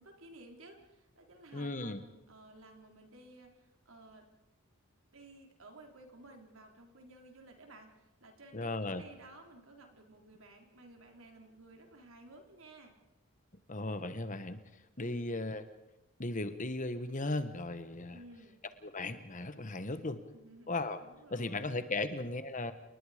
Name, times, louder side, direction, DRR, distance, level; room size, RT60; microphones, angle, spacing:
voice 1, 0.0-4.3 5.1-13.0 15.0-15.4 18.1-18.6 19.9-20.7 21.0-21.7, right 2 dB, 65° right, 3 dB, 4.0 m, -55 dB
voice 2, 1.5-2.0 8.5-9.0 13.7-14.6 15.0-15.6 16.2-18.2 18.8-20.2 20.7-21.0 21.3-22.7, left 2 dB, 35° left, 11 dB, 1.3 m, -36 dB
30.0 x 20.0 x 5.1 m, 0.94 s
head